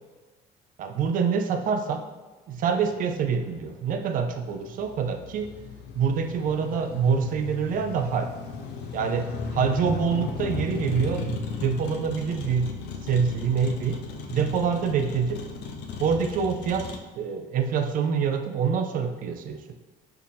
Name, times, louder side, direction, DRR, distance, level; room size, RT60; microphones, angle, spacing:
voice 1, 0.8-2.0 2.5-5.5 5.9-8.3 8.9-12.7 13.0-14.0 14.3-15.4 16.0-16.9 17.2-19.7, right 6 dB, 55° right, 6 dB, 0.4 m, -26 dB
Motor vehicle (road), 2.9-17.0, left 4 dB, 75° left, 0.5 m, -36 dB
4.4 x 2.7 x 2.6 m, 1.3 s
cardioid pair, 110°, 17 cm